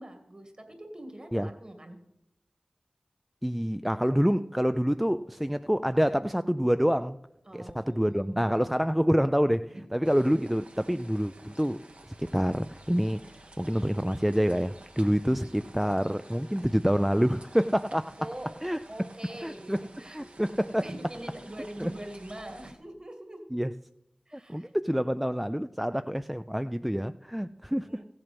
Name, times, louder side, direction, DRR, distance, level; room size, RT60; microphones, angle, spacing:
voice 1, 0.0-2.0 7.5-8.4 9.7-10.1 18.2-18.5 18.9-20.2 20.8-23.4 24.3-24.7 27.8-28.1, right 1 dB, 35° right, 2.1 m, -43 dB
voice 2, 3.4-7.2 7.5-11.8 12.2-18.1 18.6-18.8 19.4-20.9 21.8-21.9 23.5-23.7 24.3-27.9, equal, 5° right, 0.3 m, -27 dB
sound 1, 10.0-22.7, right 2 dB, 65° right, 1.4 m, -51 dB
15.0 x 7.7 x 5.9 m
wide cardioid pair, 55°, 2 cm